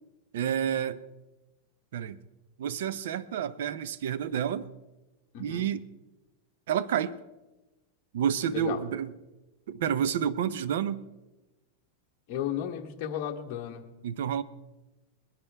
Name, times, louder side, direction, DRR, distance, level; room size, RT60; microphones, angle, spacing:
voice 1, 0.3-1.0 1.9-2.2 2.6-4.7 5.4-5.8 6.7-7.2 8.1-9.1 9.7-11.0 14.0-14.4, right 9 dB, 75° right, 16 dB, 0.7 m, -29 dB
voice 2, 5.3-5.7 8.5-8.8 12.3-13.8, left 10 dB, 45° left, 1 dB, 1.4 m, -34 dB
21.0 x 11.0 x 3.5 m, 1.0 s
supercardioid pair, 150°, 0 cm